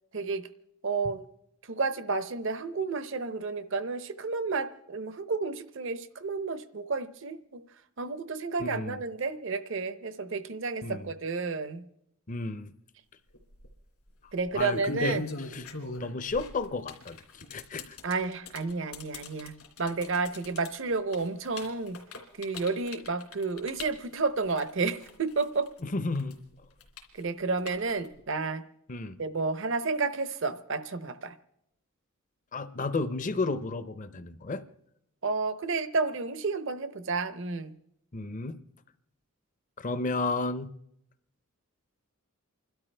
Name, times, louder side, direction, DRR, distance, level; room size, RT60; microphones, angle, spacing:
voice 1, 0.1-0.5 0.8-1.3 1.7-7.6 8.0-11.8 14.3-15.2 18.0-19.5 19.8-22.0 22.4-25.7 27.1-28.6 29.2-31.3 35.2-37.7, right 4 dB, 60° right, 12 dB, 0.8 m, -31 dB
voice 2, 8.6-9.0 10.8-11.1 12.3-12.7 14.5-15.2 15.5-15.7 16.0-18.0 25.8-26.4 28.9-29.2 32.5-34.6 38.1-38.6 39.8-40.7, left 3 dB, 35° left, 13 dB, 0.6 m, -32 dB
sound 1, 13.3-13.7 14.4-25.8 26.1-28.2, left 3 dB, 80° left, 2.9 m, -41 dB
28.5 x 12.5 x 3.4 m, 0.79 s
head